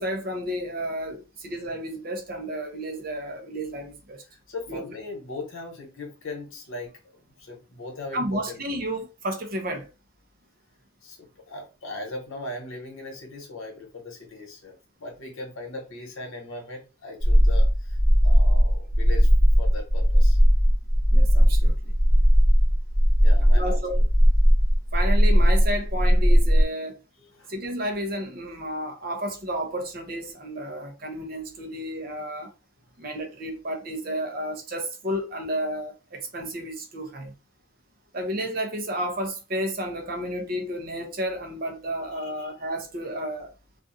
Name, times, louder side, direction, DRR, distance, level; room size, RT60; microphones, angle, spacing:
voice 1, 0.0-4.2 4.7-4.8 8.1-9.9 21.1-21.9 23.5-24.0 24.9-27.0 27.5-32.5 33.0-37.4 38.1-43.5, equal, 45° right, 0.6 m, -31 dB
voice 2, 4.3-8.6 11.0-18.0 18.2-19.3 19.6-20.4 23.2-24.0 27.2-27.5 42.1-42.5, left 2 dB, 70° left, 1.0 m, -39 dB
sound 1, 17.2-26.6, equal, 15° left, 0.4 m, -18 dB
2.5 x 2.3 x 2.6 m
head